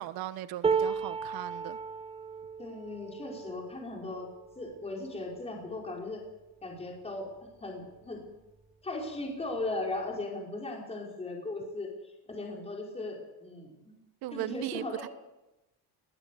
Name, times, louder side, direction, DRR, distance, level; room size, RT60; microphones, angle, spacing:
voice 1, 0.0-1.8 14.2-15.1, right 15 dB, 75° right, 1.3 m, -38 dB
sound 1, 0.6-6.8 7.4-7.6 7.9-8.6 9.6-9.7, right 5 dB, 15° right, 0.9 m, -35 dB
voice 2, 2.6-4.3 4.5-6.2 6.6-8.2 8.8-11.9 12.3-14.0 14.3-15.1, left 2 dB, 15° left, 5.0 m, -37 dB
20.5 x 15.0 x 8.6 m
cardioid pair, 145°, 37 cm